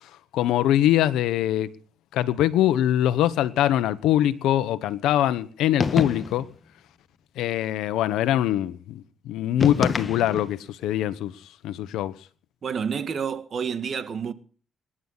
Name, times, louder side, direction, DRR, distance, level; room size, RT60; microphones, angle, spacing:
voice 1, 0.3-1.7 2.1-6.5 7.4-11.3 11.6-12.2, left 12 dB, 90° left, 1.1 m, -23 dB
sound 1, 5.8-6.5 9.6-10.6, left 4 dB, 35° left, 1.4 m, -27 dB
voice 2, 12.6-14.3, right 6 dB, 50° right, 1.9 m, -29 dB
26.5 x 11.5 x 4.1 m
cardioid pair, 90°, 0 cm